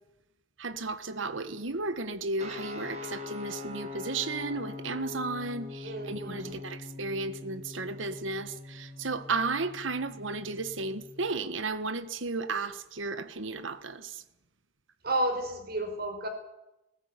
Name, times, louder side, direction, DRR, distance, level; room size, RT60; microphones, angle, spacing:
voice 1, 0.6-14.2, right 3 dB, 85° right, 1.6 m, -34 dB
sound 1, 2.4-11.3, left 3 dB, 35° right, 3.7 m, -43 dB
voice 2, 5.8-6.6 15.0-16.3, right 1 dB, 50° right, 4.9 m, -32 dB
19.5 x 15.0 x 9.8 m
head